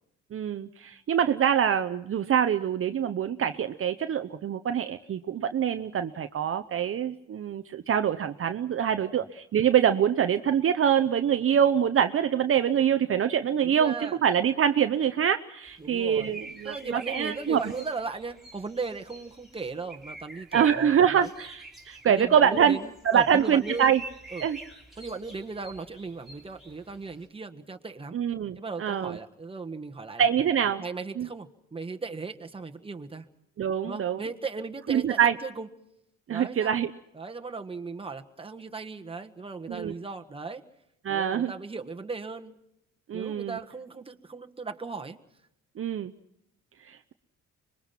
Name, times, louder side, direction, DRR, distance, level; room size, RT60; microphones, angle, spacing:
voice 1, 0.3-17.6 20.5-22.8 23.0-24.0 24.4-24.6 28.1-29.2 30.2-30.8 31.2-31.3 33.6-34.2 34.9-35.3 36.3-36.9 39.7-39.9 41.0-41.5 43.1-43.6 45.8-46.1 46.9-47.1, right 8 dB, 45° right, 8 dB, 0.8 m, -25 dB
voice 2, 13.6-14.2 15.8-16.3 16.6-21.3 22.1-24.0 24.3-24.5 25.0-28.2 28.6-30.2 30.8-33.2 33.8-35.7 36.3-36.8 37.1-40.6 41.1-42.6 43.1-45.2, right 4 dB, 20° right, 4 dB, 1.5 m, -37 dB
sound 1, 15.7-27.3, right 2 dB, ahead, 3.5 m, -46 dB
25.5 x 21.5 x 5.8 m, 0.80 s
cardioid pair, 90°, 30 cm